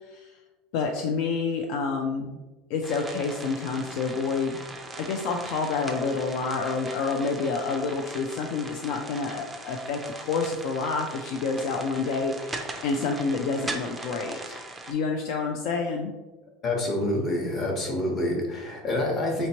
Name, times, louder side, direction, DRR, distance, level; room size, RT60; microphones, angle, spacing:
voice 1, 0.7-2.4 2.7-4.6 5.0-14.6 14.9-16.1, left 4 dB, 60° left, 3 dB, 0.4 m, -28 dB
sound 1, 2.8-14.9, right 2 dB, 10° right, 0.4 m, -40 dB
voice 2, 16.6-19.5, left 1 dB, 30° left, 0 dB, 0.9 m, -27 dB
4.2 x 2.9 x 2.8 m, 1.2 s
supercardioid pair, 150°, 0 cm